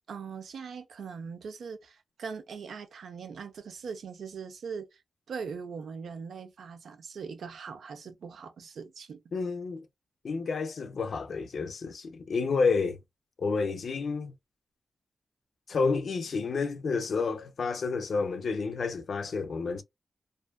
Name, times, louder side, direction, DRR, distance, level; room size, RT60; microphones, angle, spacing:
voice 1, 0.1-5.0 5.3-9.2, right 5 dB, 90° right, 0.5 m, -41 dB
voice 2, 9.3-9.9 10.2-13.0 13.4-14.3 15.7-19.8, left 4 dB, 65° left, 0.4 m, -30 dB
2.5 x 2.3 x 2.2 m
wide cardioid pair, 145°, 0 cm